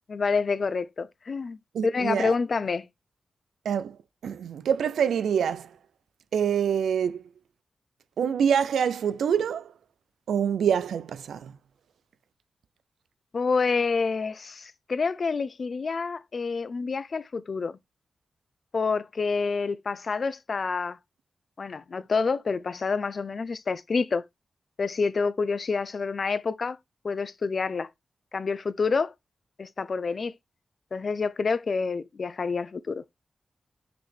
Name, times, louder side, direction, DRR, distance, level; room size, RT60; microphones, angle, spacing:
voice 1, 0.1-2.9 13.3-17.8 18.7-21.0 21.6-24.2 24.8-26.8 27.0-27.9 28.3-29.1 29.6-30.3 30.9-33.0, left 4 dB, 60° left, 0.6 m, -28 dB
voice 2, 1.7-2.3 3.7-4.0 4.2-5.7 6.3-7.2 8.2-9.7 10.3-11.5, right 8 dB, 90° right, 0.4 m, -25 dB
5.9 x 5.1 x 3.3 m
supercardioid pair, 40°, 0 cm